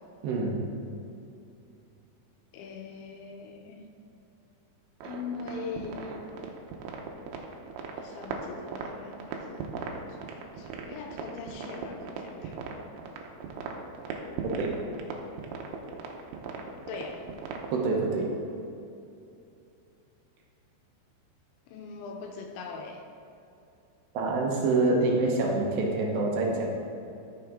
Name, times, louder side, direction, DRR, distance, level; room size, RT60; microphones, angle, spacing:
voice 1, 0.2-0.6 14.6-14.8 17.7-18.3 24.1-26.7, right 2 dB, 75° right, -1 dB, 3.1 m, -26 dB
voice 2, 2.5-3.9 5.0-6.2 8.0-12.6 16.9-17.3 21.7-23.0, left 4 dB, 90° left, 3 dB, 3.2 m, -41 dB
sound 1, 5.0-17.8, right 5 dB, 90° right, 3.2 m, -38 dB
13.0 x 6.8 x 3.7 m, 2.7 s
omnidirectional pair, 5.3 m